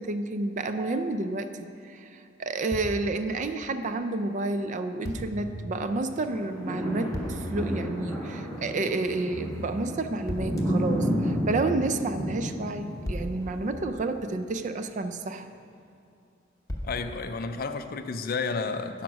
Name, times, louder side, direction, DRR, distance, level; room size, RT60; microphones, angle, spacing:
voice 1, 0.0-15.5, right 2 dB, 40° right, 9 dB, 0.4 m, -30 dB
sound 1, 2.7-3.5 5.0-5.6 7.1-7.7 10.3-10.9 13.1-14.5 16.7-17.5, left 1 dB, 15° left, 0.8 m, -37 dB
sound 2, 5.3-5.8 7.2-7.8 9.3-9.9 11.2-11.8, right 1 dB, 75° right, 0.9 m, -38 dB
sound 3, 6.2-14.5 15.0-15.1, equal, ahead, 2.4 m, -32 dB
voice 2, 16.8-19.0, left 4 dB, 45° left, 9 dB, 0.4 m, -31 dB
9.2 x 5.2 x 6.2 m, 2.5 s
head